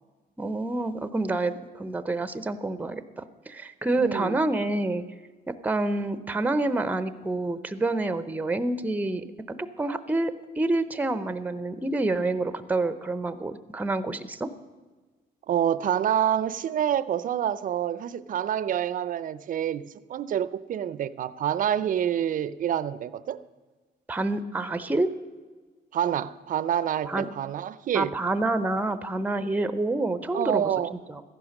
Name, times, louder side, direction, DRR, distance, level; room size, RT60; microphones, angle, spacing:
voice 1, 0.4-5.0 5.5-14.5 24.1-25.1 27.1-27.3 27.9-30.7 31.1-31.2, right 2 dB, 10° right, 0.7 m, -28 dB
voice 2, 4.0-4.4 15.5-23.4 25.9-28.1 30.3-30.9, right 10 dB, 50° right, 0.5 m, -27 dB
14.5 x 11.0 x 6.5 m
cardioid pair, 130°, 18 cm